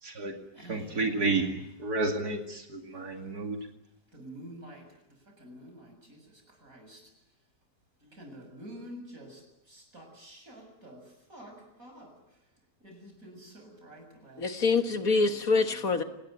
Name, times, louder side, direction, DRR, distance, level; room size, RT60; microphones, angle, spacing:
voice 1, 0.0-1.5 1.8-3.6, right 3 dB, 70° right, 3 dB, 2.9 m, -31 dB
voice 2, 0.6-1.5 4.2-4.8 5.4-5.6 8.2-9.3 9.9-11.0 11.3-11.5 11.8-12.0 13.2-13.4 13.8-14.0 15.1-15.3 15.6-15.9, equal, 55° right, 4 dB, 7.6 m, -46 dB
voice 3, 14.4-16.0, left 4 dB, 60° left, 7 dB, 2.0 m, -25 dB
29.0 x 19.5 x 9.2 m, 0.85 s
omnidirectional pair, 1.7 m